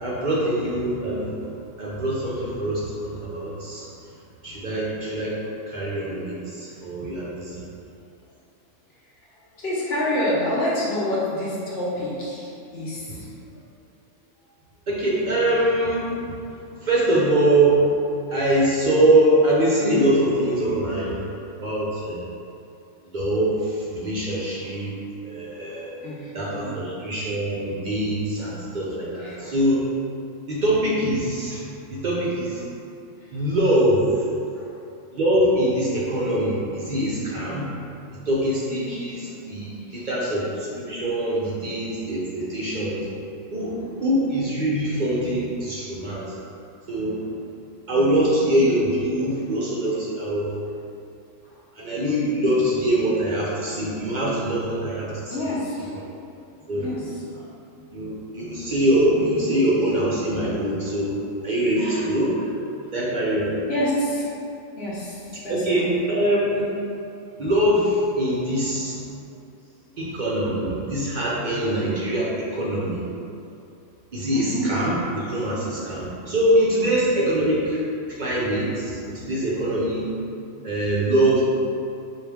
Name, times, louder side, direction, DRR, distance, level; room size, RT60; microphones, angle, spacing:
voice 1, 0.0-1.4 1.8-3.9 4.4-5.4 5.7-7.6 14.9-16.3 16.8-17.9 18.3-21.2 21.6-22.3 23.1-24.9 25.2-25.9 26.3-29.8 30.5-31.6 31.9-32.6 33.3-34.1 35.1-37.7 38.3-43.0 43.5-46.3 46.9-47.2 47.9-50.5 51.8-55.5 56.7-57.0 57.9-61.2 61.4-62.3 62.9-63.6 65.5-66.7 67.4-69.0 70.0-73.0 74.1-77.8 78.1-80.1 80.6-81.4, right 1 dB, 50° right, -6 dB, 0.6 m, -23 dB
voice 2, 9.6-13.3 26.0-26.9 28.4-28.5 29.2-29.5 34.5-34.7 39.8-40.1 51.4-51.5 55.3-56.0 56.8-57.2 61.8-62.1 63.7-64.3 64.8-65.9 67.2-67.3 74.3-74.7, left 1 dB, 55° left, -7 dB, 1.0 m, -28 dB
4.7 x 2.3 x 3.4 m, 2.6 s
omnidirectional pair, 1.3 m